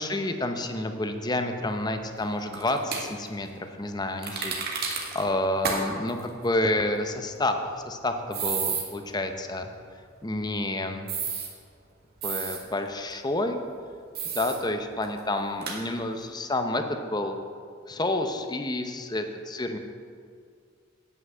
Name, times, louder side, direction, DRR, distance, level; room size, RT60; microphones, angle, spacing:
voice 1, 0.0-7.6 7.9-9.7 10.2-11.1 12.2-13.6 14.3-17.4 17.9-19.8, left 1 dB, 20° left, 6 dB, 0.7 m, -29 dB
sound 1, 2.5-3.0 4.2-5.2 5.6-5.8 6.1-6.2 8.3-8.8 11.1-11.5 12.2-12.6 14.1-14.6 15.0-15.1 15.6-15.8, right 6 dB, 50° right, 1.8 m, -30 dB
9.6 x 5.8 x 7.9 m, 2.2 s
head